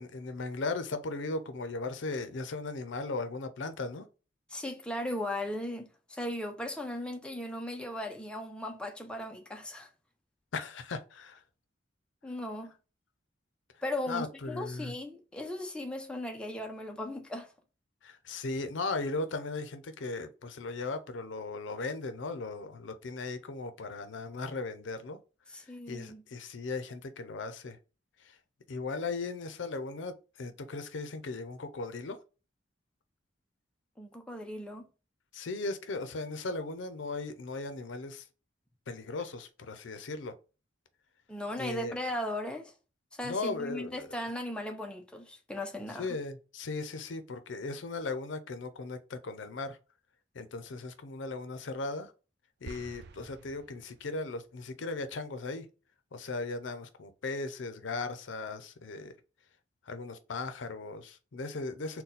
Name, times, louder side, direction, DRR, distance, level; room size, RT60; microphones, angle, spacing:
voice 1, 0.0-4.0 10.5-11.4 14.1-14.9 18.0-25.2 25.9-27.8 28.2-28.3 28.7-32.2 35.3-38.2 38.9-40.3 41.6-42.0 43.2-44.1 46.0-49.8 50.3-52.1 52.6-55.7 56.1-59.1 59.9-62.0, left 3 dB, 75° left, 0.5 m, -37 dB
voice 2, 4.5-9.9 12.2-12.7 13.8-17.5 25.5-26.2 34.0-34.9 41.3-42.7 43.1-46.2, left 1 dB, 5° left, 0.5 m, -37 dB
sound 1, 52.6-54.3, right 4 dB, 60° right, 0.4 m, -49 dB
4.0 x 2.2 x 3.9 m
head